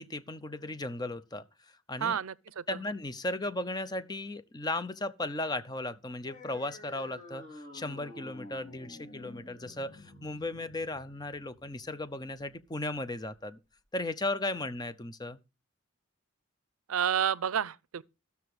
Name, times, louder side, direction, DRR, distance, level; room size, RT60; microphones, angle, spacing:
voice 1, 0.0-1.4 1.9-2.2 2.7-13.6 13.9-15.4, left 2 dB, 20° left, 0.6 m, -36 dB
voice 2, 2.0-2.6 16.9-18.0, right 8 dB, 85° right, 0.5 m, -30 dB
sound 1, 6.2-13.3, left 2 dB, 35° left, 3.7 m, -50 dB
14.0 x 6.9 x 4.8 m
head